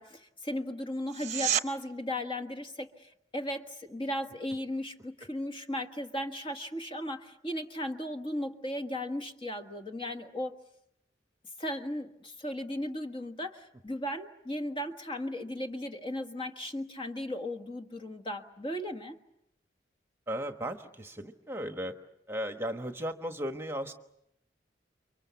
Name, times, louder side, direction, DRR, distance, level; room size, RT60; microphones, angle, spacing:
voice 1, 0.0-10.5 11.6-19.2, left 1 dB, 25° left, 5 dB, 1.6 m, -36 dB
sound 1, 1.1-1.7 13.0-13.1, right 10 dB, 40° right, 0.9 m, -29 dB
voice 2, 20.3-21.9 22.3-23.9, equal, 15° right, 6 dB, 1.3 m, -36 dB
30.0 x 24.0 x 7.1 m, 0.80 s
head